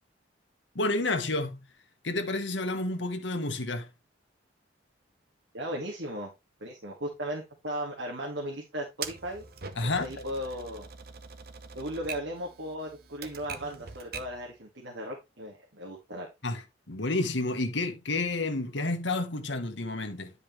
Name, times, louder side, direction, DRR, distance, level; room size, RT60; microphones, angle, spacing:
voice 1, 0.7-1.6 2.0-3.9 9.8-10.2 16.4-20.3, left 2 dB, 75° left, 1.4 m, -30 dB
voice 2, 5.5-6.3 6.6-9.4 9.8-10.9 11.7-16.3, equal, 70° right, 2.1 m, -36 dB
Typewriter, 9.0-14.4, right 6 dB, 55° right, 0.9 m, -43 dB
10.0 x 5.2 x 3.3 m
head